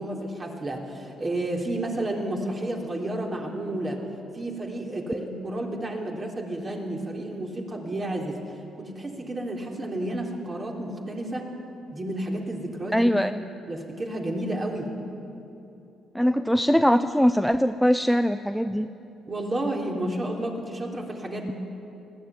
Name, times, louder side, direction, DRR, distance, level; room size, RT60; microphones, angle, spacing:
voice 1, 0.0-4.0 4.3-8.4 8.8-11.5 11.9-13.1 13.7-14.9 19.3-21.5, right 1 dB, 30° right, 0 dB, 3.4 m, -31 dB
voice 2, 12.9-13.4 16.1-18.9, equal, ahead, 10 dB, 0.5 m, -22 dB
19.5 x 14.5 x 9.6 m, 2.8 s
cardioid pair, 90°, 0 cm